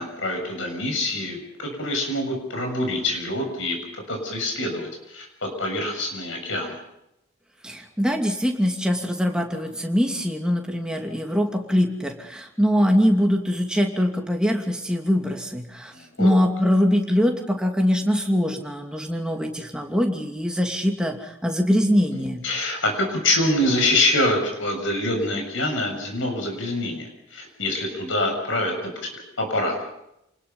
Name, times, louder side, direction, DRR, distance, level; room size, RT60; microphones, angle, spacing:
voice 1, 0.0-3.8 4.1-6.8 15.9-16.3 22.4-29.1 29.4-29.7, left 1 dB, 70° left, 3 dB, 7.0 m, -25 dB
voice 2, 7.6-15.9 16.2-22.4, equal, 5° right, 2 dB, 2.6 m, -23 dB
28.5 x 20.5 x 5.6 m, 0.81 s
head